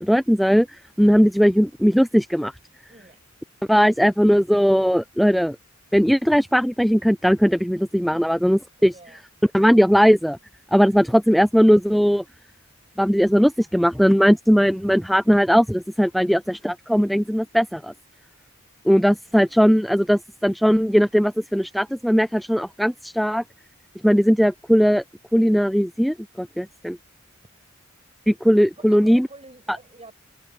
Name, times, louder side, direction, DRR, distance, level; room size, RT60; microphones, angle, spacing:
voice 1, 0.0-2.5 3.7-5.6 5.9-8.9 9.5-10.4 10.7-12.2 13.0-17.9 18.9-23.4 24.0-25.0 25.3-27.0 28.3-29.3, equal, ahead, 0.3 m, -18 dB
voice 2, 2.9-3.3 8.8-9.2 19.1-19.6 28.8-30.1, right 2 dB, 30° right, 6.6 m, -48 dB
head